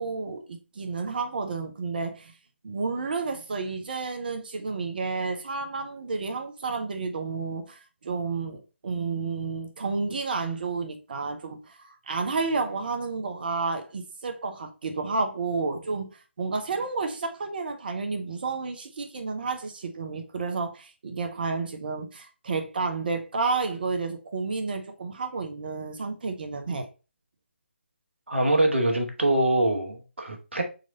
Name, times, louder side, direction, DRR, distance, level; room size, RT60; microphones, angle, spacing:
voice 1, 0.0-2.3 2.6-16.1 16.4-26.9, right 4 dB, 50° right, 1.0 m, -31 dB
voice 2, 28.3-30.6, right 1 dB, 75° right, 1.3 m, -24 dB
4.1 x 3.1 x 3.9 m
figure-of-eight pair, 145°, 6 cm